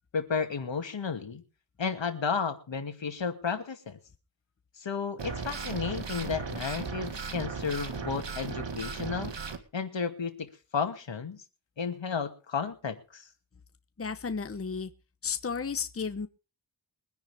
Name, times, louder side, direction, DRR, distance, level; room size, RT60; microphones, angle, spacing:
voice 1, 0.1-1.4 1.8-4.0 4.8-9.3 9.7-11.4 11.8-13.2, left 5 dB, 80° left, 7 dB, 2.3 m, -33 dB
sound 1, 5.2-9.6, right 5 dB, 75° right, 2.0 m, -36 dB
voice 2, 14.0-14.9 15.2-16.3, left 5 dB, 30° left, 10 dB, 0.9 m, -33 dB
23.0 x 10.5 x 3.5 m, 0.34 s
wide cardioid pair, 100°, 44 cm